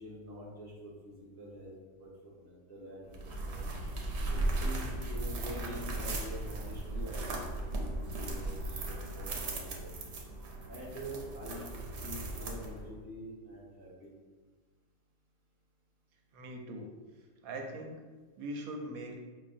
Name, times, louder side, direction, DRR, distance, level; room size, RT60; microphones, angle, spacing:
voice 1, 0.0-3.6 4.3-9.9 10.7-11.7 12.0-14.3, equal, 20° left, -7 dB, 0.5 m, -46 dB
sound 1, 3.1-13.0, right 2 dB, 60° right, 0.8 m, -37 dB
voice 2, 16.3-16.9 17.2-18.0 18.4-19.2, right 1 dB, 85° right, 3 dB, 1.0 m, -41 dB
5.5 x 2.1 x 2.5 m, 1.4 s
omnidirectional pair, 1.5 m